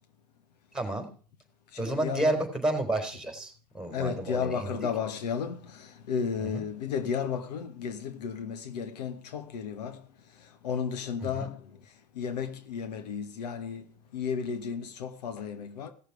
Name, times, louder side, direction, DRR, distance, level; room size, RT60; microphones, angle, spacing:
voice 1, 0.7-1.1 1.8-4.8 6.4-6.6 11.2-11.5, right 2 dB, 5° right, 3.9 m, -31 dB
voice 2, 1.7-2.4 3.9-10.0 10.6-11.6 12.2-13.8 14.1-15.9, left 7 dB, 85° left, 1.3 m, -33 dB
16.5 x 6.7 x 4.7 m
hypercardioid pair, 85°, 20 cm